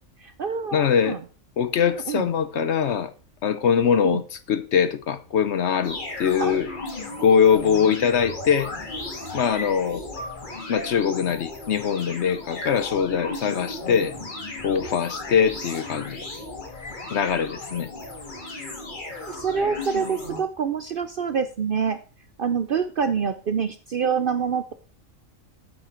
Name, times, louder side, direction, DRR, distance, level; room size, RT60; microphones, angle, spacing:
voice 1, 0.2-1.2 2.1-2.3 4.0-4.2 6.4-6.6 19.3-22.0 22.4-24.7, right 6 dB, 55° right, 0.6 m, -26 dB
voice 2, 0.7-1.2 1.6-3.1 3.4-4.2 4.5-6.7 7.2-8.7 9.3-10.0 10.7-14.1 14.6-16.2 17.1-17.9, left 7 dB, 60° left, 0.9 m, -22 dB
sound 1, 5.8-20.4, left 2 dB, 35° left, 1.8 m, -35 dB
8.7 x 7.5 x 4.4 m
omnidirectional pair, 1.4 m